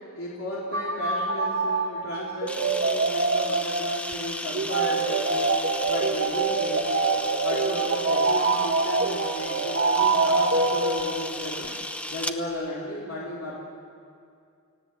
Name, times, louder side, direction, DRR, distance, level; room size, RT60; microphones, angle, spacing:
voice 1, 0.1-5.5 5.9-7.1 7.4-11.7 12.1-13.5, left 1 dB, 65° left, -6 dB, 3.7 m, -34 dB
sound 1, 0.7-11.5, right 3 dB, 50° right, 1.4 m, -25 dB
Camera, 2.5-12.4, left 1 dB, 5° left, 0.9 m, -35 dB
30.0 x 18.0 x 8.2 m, 2.4 s
head